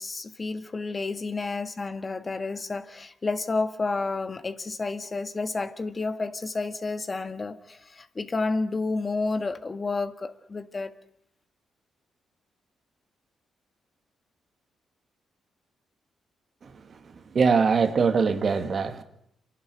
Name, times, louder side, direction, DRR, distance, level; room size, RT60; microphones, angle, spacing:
voice 1, 0.0-10.9, left 3 dB, 35° left, 1.7 m, -30 dB
voice 2, 17.3-19.0, right 5 dB, 55° right, 2.2 m, -22 dB
28.0 x 12.0 x 9.2 m
hypercardioid pair, 45°, 0 cm